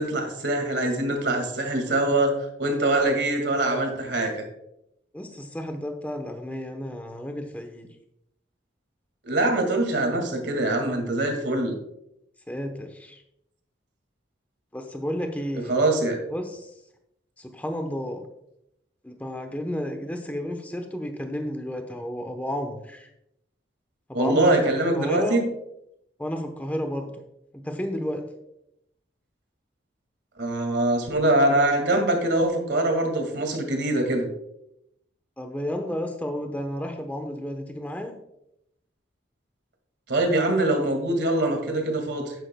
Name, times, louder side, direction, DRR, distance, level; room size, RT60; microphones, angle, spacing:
voice 1, 0.0-4.4 9.2-11.7 15.7-16.2 24.1-25.4 30.4-34.3 40.1-42.3, right 1 dB, 65° right, 3 dB, 2.0 m, -23 dB
voice 2, 5.1-7.9 12.5-13.2 14.7-15.7 16.3-16.7 17.4-18.2 19.0-23.1 24.1-24.5 25.0-25.4 26.2-27.1 27.6-28.2 35.4-38.1, equal, 10° left, 5 dB, 0.9 m, -32 dB
11.0 x 9.2 x 2.2 m, 0.80 s
head